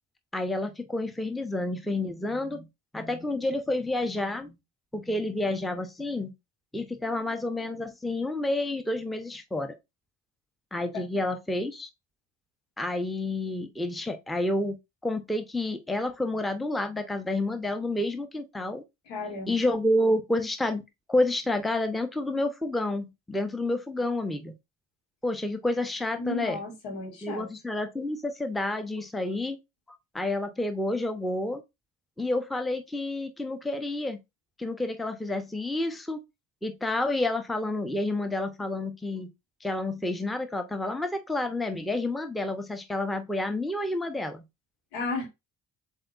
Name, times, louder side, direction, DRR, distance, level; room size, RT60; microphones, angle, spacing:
voice 1, 0.3-2.7 2.9-4.6 4.9-6.3 6.7-9.7 10.7-11.9 12.8-14.7 15.0-18.8 19.5-20.8 21.1-24.5 25.2-26.6 27.2-29.6 30.1-31.6 32.2-34.2 34.6-36.2 36.6-39.3 39.6-44.4, left 2 dB, ahead, 0.7 m, -29 dB
voice 2, 19.1-19.6 26.2-27.5 44.9-45.3, left 3 dB, 80° left, 1.5 m, -34 dB
7.3 x 2.7 x 2.4 m
hypercardioid pair, 50°, 46 cm